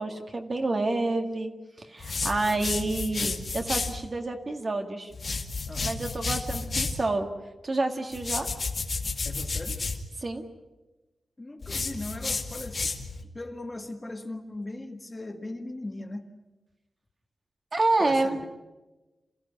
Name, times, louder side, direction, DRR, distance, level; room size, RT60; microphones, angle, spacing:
voice 1, 0.0-1.5 1.8-5.1 5.8-7.3 7.6-8.5 10.2-10.4 17.7-18.4, right 2 dB, 35° right, 4 dB, 2.0 m, -28 dB
sound 1, 2.0-4.0 5.1-7.0 8.1-10.0 11.6-13.2, left 4 dB, 40° left, 2.1 m, -31 dB
voice 2, 5.7-6.0 9.3-9.8 11.4-12.9 13.3-16.3 18.0-18.5, left 2 dB, 20° left, 5 dB, 1.7 m, -38 dB
28.0 x 16.0 x 9.9 m, 1.1 s
wide cardioid pair, 165°, 0 cm